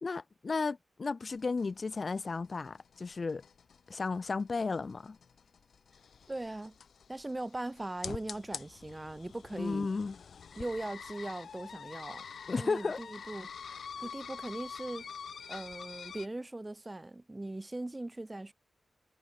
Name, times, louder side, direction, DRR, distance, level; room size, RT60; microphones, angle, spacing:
voice 1, 0.0-3.4 3.9-5.2 9.5-10.1 12.5-13.0 14.0-14.1, left 4 dB, 45° left, 0.4 m, -34 dB
sound 1, 1.3-16.3, left 6 dB, 80° left, 2.2 m, -47 dB
voice 2, 6.3-6.8 7.1-9.9 10.6-12.2 12.6-13.5 14.0-15.0 15.5-18.5, right 2 dB, 20° right, 0.7 m, -40 dB
wide cardioid pair, 90°, 0 cm